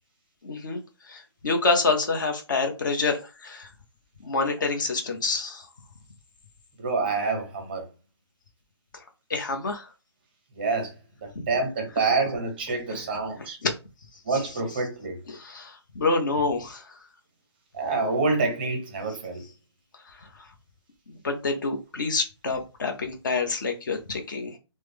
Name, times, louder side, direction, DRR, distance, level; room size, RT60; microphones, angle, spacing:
voice 1, 0.4-3.7 4.2-5.7 8.9-9.0 9.3-9.9 11.3-11.6 12.0-12.1 12.9-13.0 13.4-13.7 14.3-14.8 15.3-17.0 20.0-20.5 21.1-24.6, left 3 dB, 45° left, 0.8 m, -28 dB
voice 2, 6.8-7.8 10.6-10.9 11.5-13.6 14.3-15.2 17.7-19.4, right 3 dB, 20° right, 0.6 m, -27 dB
3.2 x 2.1 x 3.4 m
hypercardioid pair, 170°, 14 cm